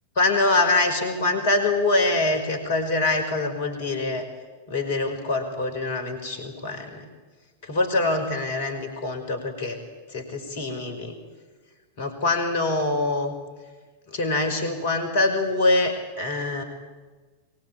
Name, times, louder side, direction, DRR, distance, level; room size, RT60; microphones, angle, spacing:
voice 1, 0.2-4.2 4.7-7.1 7.6-9.8 10.1-11.2 12.0-13.3 14.1-16.6, left 2 dB, 55° left, 6 dB, 5.6 m, -24 dB
23.0 x 23.0 x 9.0 m, 1.3 s
figure-of-eight pair, 90°, 0 cm